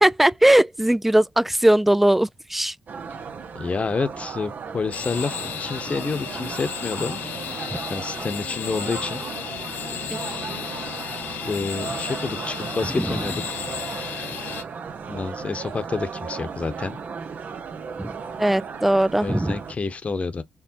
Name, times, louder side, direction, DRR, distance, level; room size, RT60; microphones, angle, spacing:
voice 1, 0.0-2.7 13.0-13.2 18.0-18.1 18.4-19.5, right 1 dB, 5° right, 0.3 m, -19 dB
sound 1, 2.9-19.7, right 6 dB, 60° right, 0.8 m, -35 dB
voice 2, 3.5-7.2 7.9-9.2 11.4-13.6 14.2-14.3 15.1-17.0 19.2-20.4, left 4 dB, 45° left, 1.0 m, -29 dB
sound 2, 4.9-14.6, left 8 dB, 80° left, 0.7 m, -34 dB
4.8 x 3.2 x 2.9 m
supercardioid pair, 50°, 3 cm